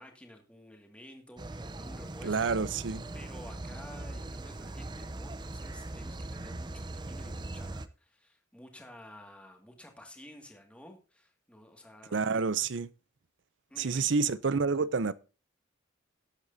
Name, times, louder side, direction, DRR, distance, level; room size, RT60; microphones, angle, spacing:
voice 1, 0.0-2.5 3.1-12.2 13.7-14.3, left 1 dB, 5° left, 2.0 m, -52 dB
sound 1, 1.4-7.9, right 2 dB, 20° right, 0.6 m, -40 dB
voice 2, 2.2-3.0 12.1-12.9 13.8-15.1, right 5 dB, 65° right, 0.6 m, -28 dB
18.0 x 8.2 x 2.7 m
head